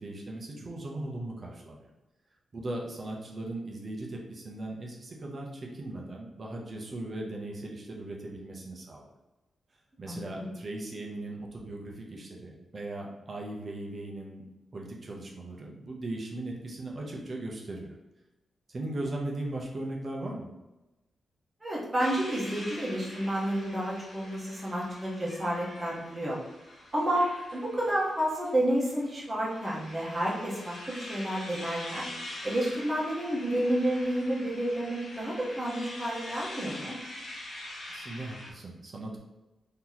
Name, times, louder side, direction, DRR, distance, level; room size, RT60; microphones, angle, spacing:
voice 1, 0.0-1.9 2.5-9.0 10.0-14.4 14.7-17.9 18.7-20.5 37.9-39.2, right 2 dB, 35° right, -1 dB, 0.6 m, -38 dB
voice 2, 10.1-10.5 21.6-26.4 26.9-32.1 32.4-37.0, right 1 dB, 10° right, -5 dB, 0.9 m, -30 dB
sound 1, 22.0-38.5, left 1 dB, 85° left, 0.8 m, -44 dB
2.9 x 2.8 x 3.9 m, 1.0 s
wide cardioid pair, 180°, 0 cm